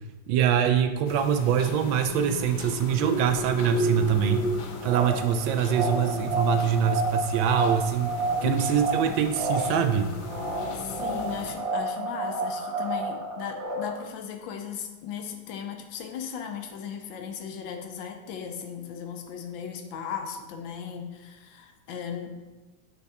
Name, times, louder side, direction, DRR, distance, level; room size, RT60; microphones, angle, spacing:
voice 1, 0.3-4.4 4.8-8.1 8.4-10.1, right 8 dB, 90° right, 7 dB, 1.4 m, -24 dB
sound 1, 1.1-11.5, left 6 dB, 70° left, 1.2 m, -39 dB
sound 2, 2.7-14.0, right 2 dB, 50° right, 1.5 m, -30 dB
voice 2, 8.3-8.7 9.0-9.3 10.7-22.4, left 7 dB, 90° left, 4 dB, 1.4 m, -37 dB
7.8 x 3.5 x 4.1 m, 1.2 s
omnidirectional pair, 2.0 m